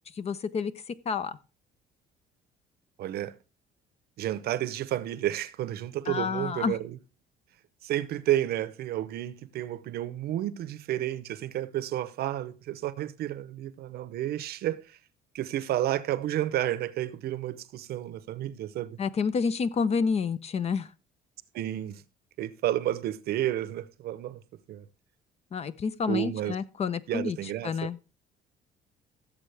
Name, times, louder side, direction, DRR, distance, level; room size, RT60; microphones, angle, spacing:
voice 1, 0.1-1.4 6.1-6.8 19.0-20.9 25.5-28.0, left 5 dB, 40° left, 0.7 m, -29 dB
voice 2, 3.0-3.3 4.2-7.0 7.8-15.0 15.3-19.0 21.5-22.0 22.4-24.4 24.7-24.8 26.1-26.5 27.1-27.9, right 13 dB, 70° right, 0.8 m, -31 dB
15.5 x 7.3 x 3.4 m
cardioid pair, 110°, 17 cm